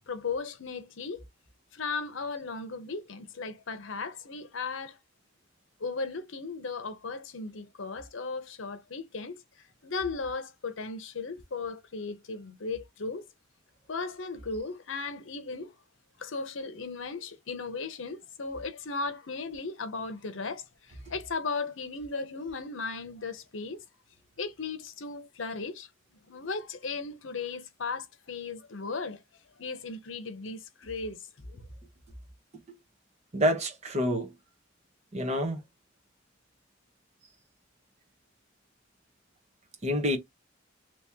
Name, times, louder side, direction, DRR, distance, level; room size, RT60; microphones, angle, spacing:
voice 1, 0.1-1.2 1.7-5.0 5.8-9.4 9.8-13.3 13.9-15.7 16.2-23.8 24.4-25.9 26.3-29.2 29.6-31.2 31.5-31.6, left 4 dB, 75° left, 0.8 m, -36 dB
voice 2, 33.3-34.3 35.1-35.6 39.8-40.2, equal, 35° right, 1.0 m, -27 dB
3.1 x 2.9 x 3.6 m
head